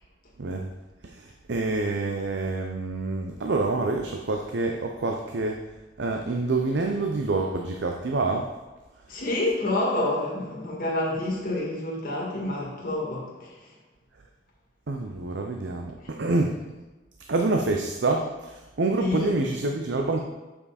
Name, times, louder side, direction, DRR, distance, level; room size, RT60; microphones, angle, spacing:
voice 1, 0.4-0.7 1.0-5.6 6.0-8.4 14.9-16.5 17.3-20.2, right 3 dB, 65° right, 2 dB, 0.6 m, -27 dB
voice 2, 9.1-13.5 19.0-19.3, left 1 dB, 50° left, -4 dB, 1.9 m, -28 dB
7.1 x 5.5 x 4.2 m, 1.1 s
head